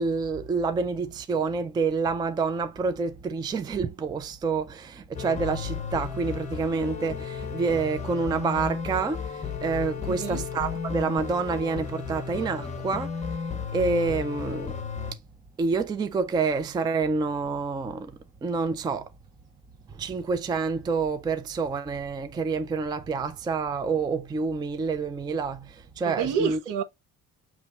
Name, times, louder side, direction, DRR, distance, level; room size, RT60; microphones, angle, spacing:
voice 1, 0.0-13.3 13.7-14.8 15.6-19.1 19.9-26.6, right 4 dB, 15° right, 0.3 m, -28 dB
sound 1, 5.1-15.1, left 6 dB, 20° left, 0.8 m, -34 dB
voice 2, 10.0-10.4 26.0-26.8, right 8 dB, 70° right, 0.8 m, -29 dB
5.6 x 3.0 x 2.9 m
cardioid pair, 140°, 33 cm